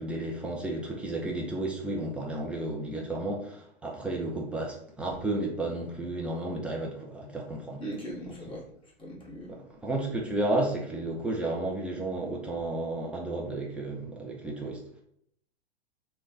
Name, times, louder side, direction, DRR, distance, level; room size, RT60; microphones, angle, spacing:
voice 1, 0.0-7.8 9.5-14.8, right 2 dB, 5° right, -2 dB, 0.3 m, -32 dB
voice 2, 7.8-8.6 9.0-9.6, right 1 dB, 15° left, -3 dB, 1.1 m, -39 dB
3.1 x 2.2 x 4.0 m, 0.68 s
figure-of-eight pair, 105°, 33 cm